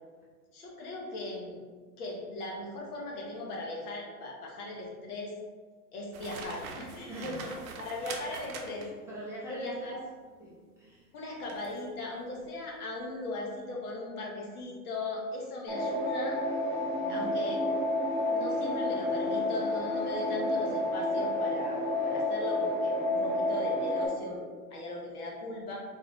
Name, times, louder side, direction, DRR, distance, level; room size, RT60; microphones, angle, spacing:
voice 1, 0.5-1.6 2.0-5.3 5.9-8.8 9.5-10.0 11.1-16.4 17.1-17.6 18.3-25.8, left 2 dB, 75° left, -2 dB, 1.3 m, -38 dB
sound 1, 6.1-9.1 11.5-11.8 12.3-12.5, right 5 dB, 65° right, 0.7 m, -43 dB
voice 2, 7.0-7.3 8.8-10.0 10.4-11.0 17.0-17.3, right 2 dB, 5° right, -9 dB, 0.4 m, -44 dB
sound 2, 15.7-24.1, left 1 dB, 25° left, 1.5 m, -30 dB
3.8 x 2.6 x 3.0 m, 1.5 s
hypercardioid pair, 115°, 45 cm